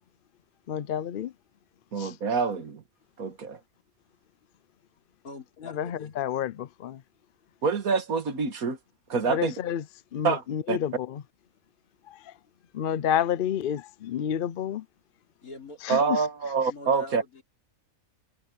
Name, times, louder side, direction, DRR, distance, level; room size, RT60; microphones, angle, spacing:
voice 1, 0.7-1.3 2.0-2.1 5.6-7.0 9.3-9.8 10.1-11.2 12.1-12.3 12.7-14.8 15.8-16.2, left 9 dB, 60° left, 0.5 m, -29 dB
voice 2, 1.9-2.8 3.2-3.6 7.6-8.8 9.1-9.6 10.2-10.8 15.9-17.2, right 5 dB, 75° right, 2.1 m, -26 dB
voice 3, 5.2-6.1 15.4-16.2 16.7-17.4, left 2 dB, 80° left, 4.8 m, -44 dB
omnidirectional pair, 1.5 m